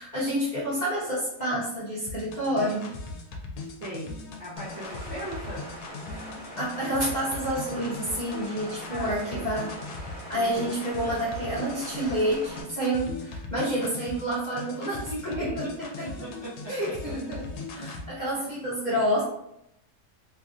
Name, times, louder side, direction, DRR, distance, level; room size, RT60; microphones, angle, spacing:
voice 1, 0.0-2.9 6.6-9.7 9.9-15.7 16.7-17.4 17.7-19.2, equal, 40° left, -8 dB, 0.7 m, -29 dB
sound 1, 2.1-18.0, left 3 dB, 85° left, 1.1 m, -40 dB
voice 2, 3.8-5.6 8.9-9.5 10.3-10.8 14.9-16.9 17.7-17.9 18.3-18.5, right 1 dB, 45° right, -8 dB, 0.9 m, -39 dB
sound 2, 4.6-12.6, equal, 70° right, 1.2 m, -42 dB
3.1 x 2.5 x 2.4 m, 0.79 s
omnidirectional pair, 1.6 m